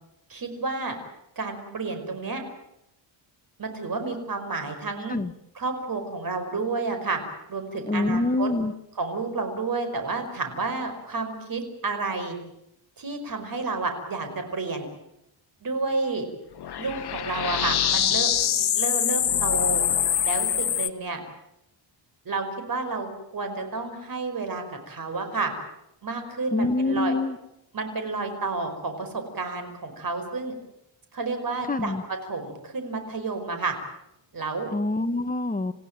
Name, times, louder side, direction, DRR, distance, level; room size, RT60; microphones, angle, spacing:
voice 1, 0.3-1.0 1.4-2.4 3.6-5.2 5.5-7.2 7.5-8.5 9.0-12.4 13.0-14.9 15.6-16.3 16.8-19.8 20.2-21.2 22.3-25.5 26.0-27.2 27.7-30.5 31.1-33.8 34.3-34.7, right 3 dB, 45° right, 6 dB, 5.4 m, -30 dB
voice 2, 7.9-8.7 26.5-27.4 31.7-32.0 34.7-35.7, left 2 dB, 20° left, 8 dB, 1.3 m, -25 dB
sound 1, 16.6-20.9, left 9 dB, 55° left, 1.1 m, -24 dB
28.5 x 16.0 x 9.1 m, 0.83 s
cardioid pair, 120°, 47 cm